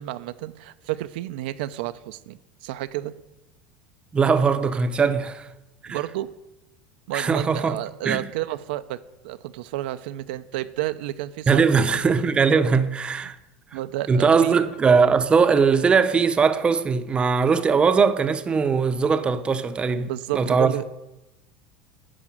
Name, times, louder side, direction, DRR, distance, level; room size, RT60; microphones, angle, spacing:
voice 1, 0.0-3.1 5.9-6.3 7.1-9.0 9.2-11.8 13.7-14.6 20.0-21.0, right 15 dB, 80° right, 0.5 m, -31 dB
voice 2, 4.1-5.5 5.8-6.0 7.1-7.8 8.0-8.2 11.5-13.4 14.1-20.7, right 5 dB, 20° right, 0.6 m, -20 dB
11.0 x 4.8 x 7.5 m
supercardioid pair, 130°, 5 cm